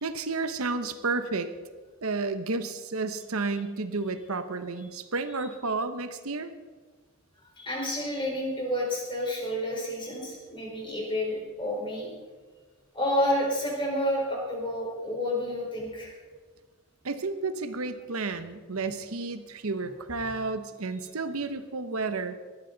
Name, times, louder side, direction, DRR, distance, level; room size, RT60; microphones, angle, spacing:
voice 1, 0.0-1.5 2.0-6.5 17.0-22.3, right 3 dB, 80° right, 9 dB, 0.9 m, -31 dB
voice 2, 7.6-12.1 12.9-16.1, equal, 20° left, -2 dB, 4.4 m, -30 dB
19.0 x 13.0 x 4.0 m, 1.4 s
head